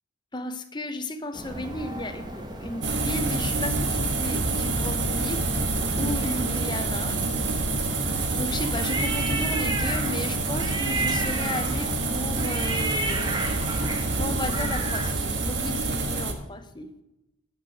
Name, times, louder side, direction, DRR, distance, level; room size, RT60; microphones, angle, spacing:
voice 1, 0.3-7.2 8.3-13.5 13.9-16.9, left 1 dB, 20° left, 7 dB, 0.8 m, -34 dB
sound 1, 1.3-15.1, right 2 dB, 20° right, 1.1 m, -33 dB
sound 2, 2.8-16.3, right 3 dB, 60° right, 1.4 m, -27 dB
12.0 x 5.1 x 6.3 m, 0.92 s
head